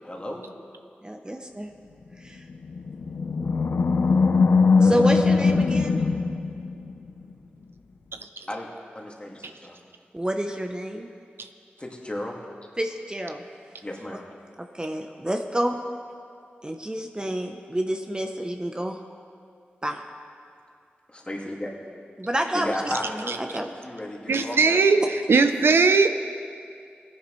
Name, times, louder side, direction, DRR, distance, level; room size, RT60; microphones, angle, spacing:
voice 1, 0.0-0.5 8.5-8.7 9.0-9.8 11.8-12.4 13.8-14.2 21.1-21.7 22.5-25.1, left 1 dB, 30° left, -1 dB, 2.0 m, -34 dB
voice 2, 1.0-1.7 2.2-2.4 4.8-6.0 10.1-11.1 12.8-13.4 14.6-15.8 16.6-19.0 19.8-20.0 22.2-23.7, right 1 dB, 20° right, 4 dB, 0.8 m, -29 dB
Animal, 2.5-7.1, left 4 dB, 70° left, 0.7 m, -21 dB
voice 3, 24.3-25.0 25.3-26.1, right 4 dB, 75° right, 8 dB, 0.5 m, -18 dB
17.5 x 10.5 x 3.2 m, 2.3 s
cardioid pair, 45°, 4 cm